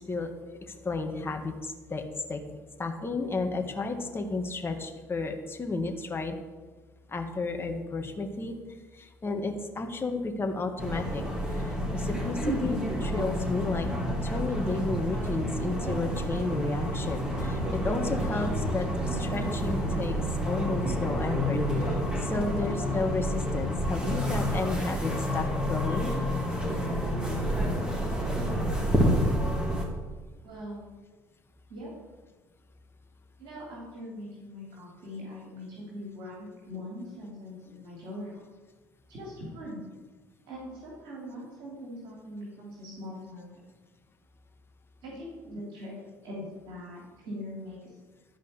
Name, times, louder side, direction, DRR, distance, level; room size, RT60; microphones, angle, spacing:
voice 1, 0.7-2.0 2.3-2.4 2.8-6.3 7.1-8.6 8.9-11.2 11.5-13.9 14.2-20.2 20.5-26.1, left 3 dB, 25° left, 4 dB, 1.7 m, -32 dB
sound 1, 10.8-29.9, equal, 10° right, 3.7 m, -29 dB
voice 2, 30.4-30.8 31.7-31.9 33.4-38.4 39.1-39.9 40.5-43.6 45.0-45.9 46.2-48.0, left 1 dB, 65° right, -4 dB, 3.2 m, -41 dB
12.5 x 5.3 x 8.3 m, 1.3 s
hypercardioid pair, 65°, 9 cm